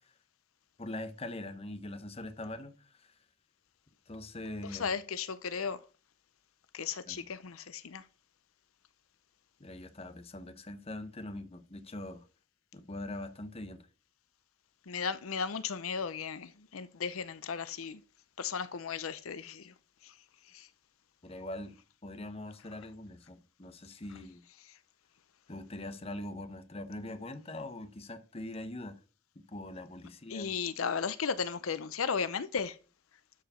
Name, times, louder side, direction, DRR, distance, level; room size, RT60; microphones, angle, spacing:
voice 1, 0.8-3.1 4.1-4.9 7.1-7.2 9.6-12.2 12.7-13.9 21.2-21.7 22.0-24.4 25.5-29.0 29.4-30.5, left 1 dB, 30° left, 0.9 m, -42 dB
voice 2, 4.6-5.8 6.7-8.0 14.9-18.0 18.4-19.7 20.0-20.1 20.5-20.7 30.3-32.8, left 6 dB, 90° left, 0.7 m, -35 dB
12.0 x 4.9 x 5.6 m
head